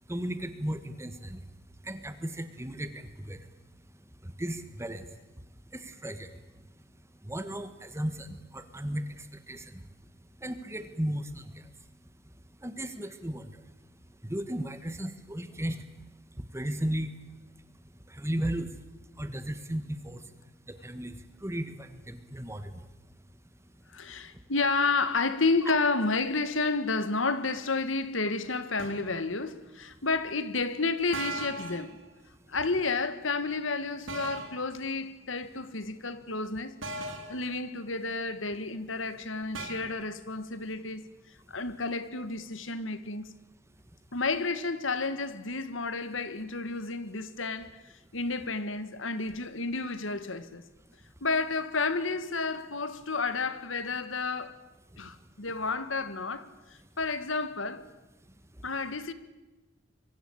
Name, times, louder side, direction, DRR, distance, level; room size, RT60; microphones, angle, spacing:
voice 1, 0.1-6.7 7.2-9.9 10.1-12.1 12.3-23.2 23.5-23.6 24.3-24.4 25.6-25.7 54.9-55.1 58.5-58.7, right 1 dB, 15° right, 1.5 m, -37 dB
voice 2, 23.9-32.0 32.5-36.8 37.3-41.1 41.5-43.3 44.1-47.7 48.1-50.6 51.2-54.6 55.0-57.8 58.6-59.1, left 3 dB, 80° left, 1.9 m, -31 dB
sound 1, 28.8-29.1 31.1-31.9 34.1-34.6 36.8-37.4 39.5-39.9, right 3 dB, 80° right, 4.1 m, -37 dB
26.0 x 24.0 x 8.8 m
head